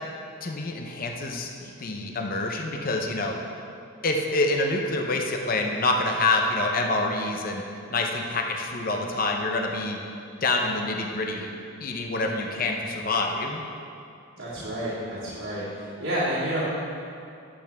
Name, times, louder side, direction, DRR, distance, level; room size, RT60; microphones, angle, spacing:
voice 1, 0.4-3.3 4.0-10.0 10.4-11.5 11.8-13.6, left 2 dB, 40° left, 2 dB, 0.8 m, -27 dB
voice 2, 14.4-16.6, right 1 dB, 80° right, -12 dB, 2.6 m, -30 dB
11.5 x 8.1 x 3.5 m, 2.5 s
head